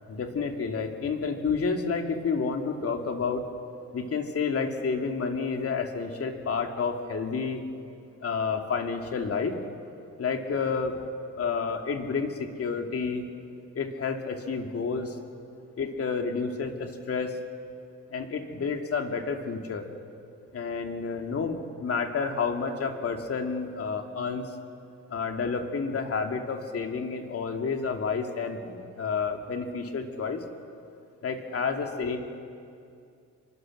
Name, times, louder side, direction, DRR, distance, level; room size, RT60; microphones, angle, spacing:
voice 1, 0.1-3.5 3.9-7.6 8.2-9.6 10.2-11.0 11.4-13.2 13.7-15.2 15.8-17.4 18.1-19.9 20.5-24.5 25.1-30.4 31.2-32.2, left 5 dB, 50° left, 4 dB, 2.6 m, -30 dB
26.0 x 24.0 x 6.5 m, 2.4 s
cardioid pair, 90°, 30 cm